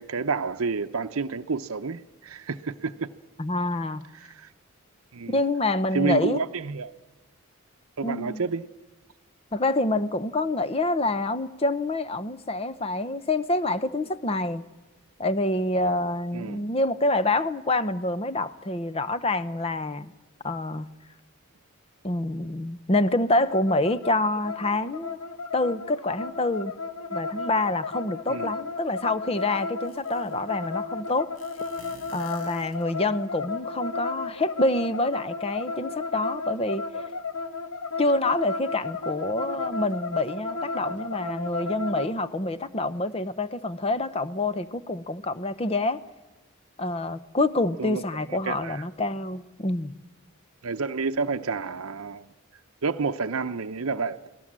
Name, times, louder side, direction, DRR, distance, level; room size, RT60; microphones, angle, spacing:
voice 1, 0.0-3.1 4.3-4.5 5.1-5.4 5.9-6.9 8.0-8.7 16.3-16.6 28.3-28.5 36.9-37.0 47.8-48.0 48.3-48.8 50.6-52.3 52.8-54.3, right 4 dB, 75° right, 0.7 m, -29 dB
voice 2, 3.4-4.0 5.3-6.4 8.0-8.4 9.5-14.6 15.2-20.1 20.4-20.9 22.0-25.2 25.5-26.7 27.1-31.3 32.1-36.8 38.0-46.0 46.8-49.9, left 2 dB, 25° left, 0.7 m, -27 dB
sound 1, 23.5-42.1, left 4 dB, 90° left, 1.5 m, -34 dB
sound 2, 28.8-28.9 29.3-30.5 31.4-33.2, left 2 dB, 65° left, 4.1 m, -49 dB
29.5 x 18.5 x 7.4 m
head